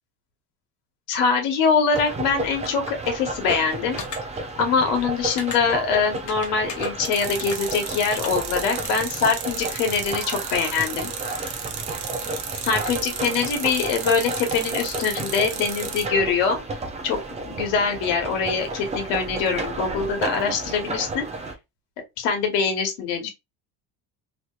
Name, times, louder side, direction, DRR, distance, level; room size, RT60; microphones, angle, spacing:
voice 1, 1.1-4.0 4.6-11.1 12.6-16.6 17.0-17.2 17.4-21.3 22.2-23.3, left 5 dB, 85° left, 1.1 m, -23 dB
sound 1, 1.9-21.5, right 2 dB, 15° right, 0.4 m, -32 dB
sound 2, 4.0-4.2 5.4-5.6 6.3-6.9 7.4-7.6 8.1-8.3 8.8-8.9, left 6 dB, 35° left, 0.9 m, -34 dB
sound 3, 7.0-16.1, right 7 dB, 55° right, 0.9 m, -34 dB
3.0 x 2.9 x 2.3 m
cardioid pair, 130°, 48 cm